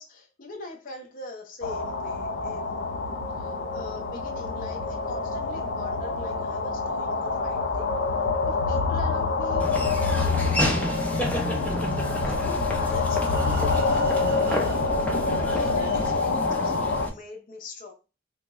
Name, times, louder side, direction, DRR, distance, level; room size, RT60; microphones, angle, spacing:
voice 1, 0.0-2.8 3.3-8.0 8.5-11.6 12.2-14.9 15.4-16.7 17.0-17.9, left 2 dB, 45° left, 1 dB, 0.7 m, -42 dB
sound 1, 1.6-17.1, left 4 dB, 80° left, 0.5 m, -27 dB
Laughter / Walk footsteps, 9.6-17.1, left 1 dB, 10° left, 0.4 m, -30 dB
Breathing, 12.2-15.1 15.9-16.0 16.3-16.4 16.9-17.0, right 5 dB, 55° right, 0.4 m, -40 dB
3.3 x 2.1 x 3.5 m, 0.30 s
head